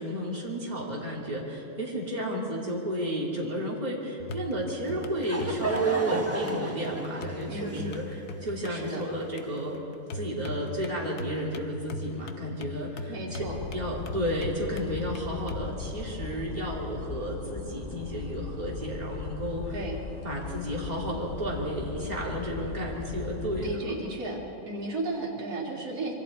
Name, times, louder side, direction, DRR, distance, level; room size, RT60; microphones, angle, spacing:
voice 1, 0.0-9.8 10.1-13.5 13.7-19.8 20.2-24.0, right 1 dB, 25° right, -4 dB, 3.1 m, -32 dB
sound 1, 4.2-15.7, left 3 dB, 85° left, 1.5 m, -40 dB
Laughter / Crowd, 4.9-9.5, right 2 dB, 10° right, 1.2 m, -34 dB
voice 2, 7.5-7.9 8.7-9.0 13.1-13.6 19.7-20.0 23.5-24.4 24.7-26.1, right 2 dB, 75° right, -5 dB, 3.3 m, -34 dB
sound 2, 13.4-23.8, left 5 dB, 40° left, 1.1 m, -38 dB
25.5 x 24.5 x 4.4 m, 2.9 s
omnidirectional pair, 1.6 m